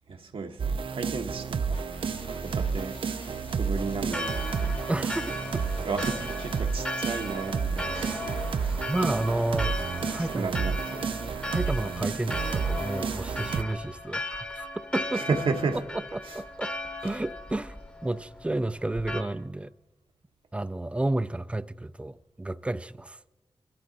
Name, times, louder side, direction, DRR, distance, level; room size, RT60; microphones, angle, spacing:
voice 1, 0.1-1.8 2.3-3.0 3.5-4.8 5.8-8.2 8.6-8.8 10.3-11.1 15.1-15.8 16.2-16.4, right 4 dB, 85° right, 1.2 m, -33 dB
sound 1, 0.6-13.6, right 5 dB, 70° right, 0.5 m, -31 dB
sound 2, 1.7-6.8, left 2 dB, 70° left, 1.5 m, -50 dB
Church bell, 4.1-19.2, left 1 dB, 10° left, 0.9 m, -37 dB
voice 2, 4.9-5.3 8.9-10.5 11.5-15.3 15.9-16.7 17.0-19.7 20.5-23.2, right 2 dB, 10° right, 0.3 m, -31 dB
22.5 x 12.0 x 4.0 m
wide cardioid pair, 120°, 9 cm